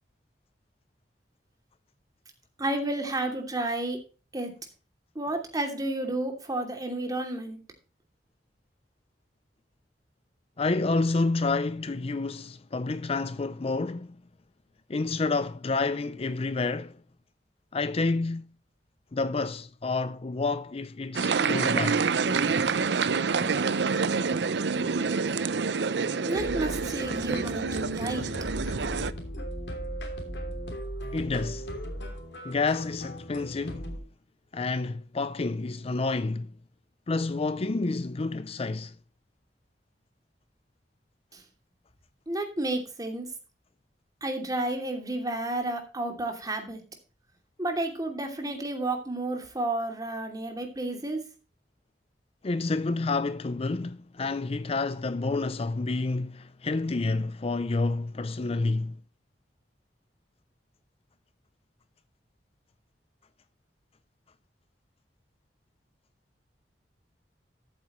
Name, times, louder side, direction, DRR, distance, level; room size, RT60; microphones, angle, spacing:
voice 1, 2.6-4.0 4.3-4.5 5.1-7.6 26.3-28.3 41.3-41.4 42.3-43.3 44.2-46.8 47.6-51.2, right 2 dB, 20° right, 2.8 m, -31 dB
voice 2, 10.6-14.2 14.9-17.0 17.7-18.5 19.1-22.0 31.1-31.7 32.4-33.9 34.5-36.5 37.1-38.9 52.4-59.0, left 3 dB, 35° left, 0.5 m, -29 dB
sound 1, 21.2-29.1, right 5 dB, 75° right, 0.6 m, -27 dB
sound 2, 26.4-34.0, equal, 80° left, 3.1 m, -37 dB
13.5 x 8.8 x 3.1 m
head